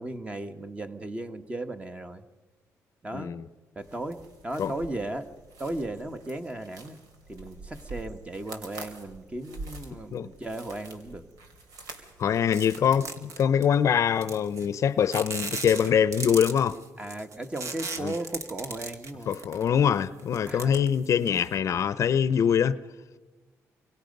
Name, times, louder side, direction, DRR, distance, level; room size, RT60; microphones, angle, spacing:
voice 1, 0.0-2.2 3.0-3.3 3.7-5.3 5.6-7.0 7.3-11.2 15.8-15.9 17.0-19.4 20.4-20.8, right 1 dB, 20° right, 1.4 m, -36 dB
voice 2, 3.1-3.5 4.6-4.7 10.1-10.3 12.2-16.8 18.0-18.1 19.3-22.8, left 8 dB, 55° left, 0.7 m, -24 dB
sound 1, 3.8-13.4, right 3 dB, 90° right, 3.1 m, -46 dB
sound 2, 12.5-13.7 14.2-14.8 15.1-19.8 20.2-21.5, right 4 dB, 55° right, 2.2 m, -37 dB
28.0 x 23.5 x 5.4 m
cardioid pair, 100°, 6 cm